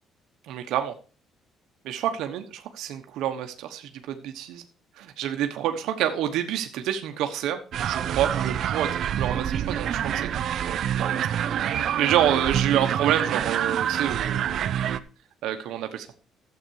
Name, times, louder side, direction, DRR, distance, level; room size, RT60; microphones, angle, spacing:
voice 1, 0.4-0.9 1.8-4.6 5.0-11.3 11.5-14.7 15.4-16.1, right 10 dB, 80° right, 6 dB, 1.2 m, -28 dB
sound 1, 7.7-15.0, right 9 dB, 55° right, 0.7 m, -27 dB
12.0 x 8.1 x 4.7 m, 0.37 s
cardioid pair, 145°, 0 cm